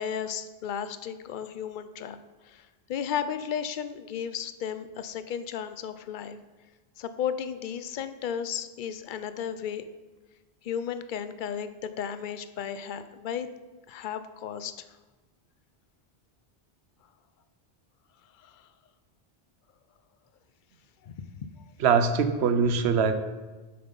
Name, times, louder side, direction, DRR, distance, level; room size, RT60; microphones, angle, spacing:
voice 1, 0.0-2.2 2.4-6.4 7.0-9.8 10.6-13.5 13.9-14.7 18.4-18.7 21.0-21.1, left 8 dB, 60° left, 12 dB, 0.6 m, -34 dB
voice 2, 21.8-23.1, right 6 dB, 90° right, 9 dB, 0.9 m, -22 dB
7.7 x 5.5 x 5.3 m, 1.2 s
omnidirectional pair, 1.1 m